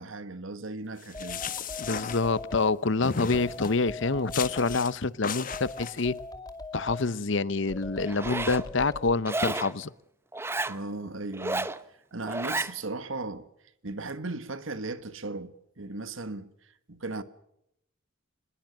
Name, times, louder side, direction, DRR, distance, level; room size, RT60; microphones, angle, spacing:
voice 1, 0.0-1.4 10.7-11.7 12.1-13.5 13.8-16.5 16.9-17.2, right 2 dB, 65° right, 1.7 m, -36 dB
sound 1, 1.0-2.7 3.0-3.8 4.3-4.9 5.2-6.1, left 7 dB, 40° left, 1.1 m, -37 dB
sound 2, 1.1-2.7 3.3-4.8 5.5-7.0 7.7-9.2, left 2 dB, 20° left, 2.3 m, -40 dB
voice 2, 1.8-6.2 6.7-9.9, left 3 dB, 60° left, 0.8 m, -27 dB
Zipper (clothing), 8.1-8.6 9.2-9.7 10.3-10.8 11.3-11.8 12.3-12.7, right 2 dB, 10° right, 0.7 m, -31 dB
24.5 x 21.0 x 6.6 m
head